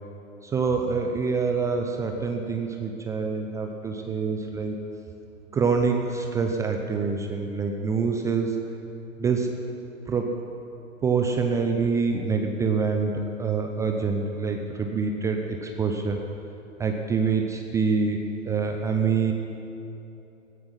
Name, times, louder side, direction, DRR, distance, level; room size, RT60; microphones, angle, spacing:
voice 1, 0.4-4.8 5.5-8.6 9.2-9.5 10.1-10.3 11.0-16.2 16.8-19.3, right 5 dB, 10° right, 3 dB, 0.4 m, -26 dB
16.5 x 15.5 x 5.7 m, 2.9 s
figure-of-eight pair, 110°, 41 cm